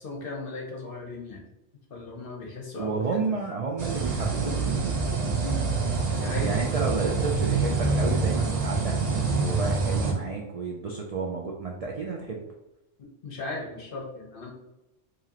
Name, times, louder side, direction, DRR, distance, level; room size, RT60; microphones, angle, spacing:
voice 1, 0.0-1.4 1.9-3.4 5.4-5.7 6.1-6.6 13.0-14.5, left 3 dB, 50° left, 0 dB, 0.9 m, -37 dB
voice 2, 2.7-5.0 6.4-12.4, right 4 dB, 70° right, -1 dB, 0.3 m, -31 dB
sound 1, 3.8-10.1, right 4 dB, 40° right, 0.7 m, -26 dB
4.8 x 2.9 x 2.8 m, 0.94 s
omnidirectional pair, 1.3 m